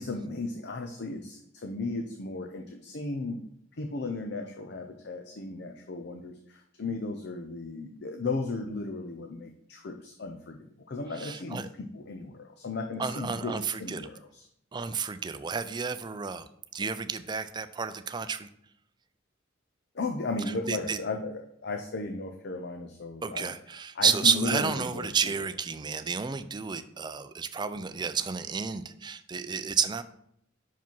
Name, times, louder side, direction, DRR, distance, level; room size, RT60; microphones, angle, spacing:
voice 1, 0.0-3.4 3.8-14.5 19.9-23.5 23.9-25.5, left 3 dB, 55° left, 4 dB, 0.6 m, -35 dB
voice 2, 11.2-11.7 13.0-14.0 14.7-16.5 16.7-18.5 20.7-21.0 23.2-30.0, right 6 dB, 25° right, 12 dB, 0.4 m, -31 dB
6.0 x 5.0 x 5.3 m, 0.71 s
head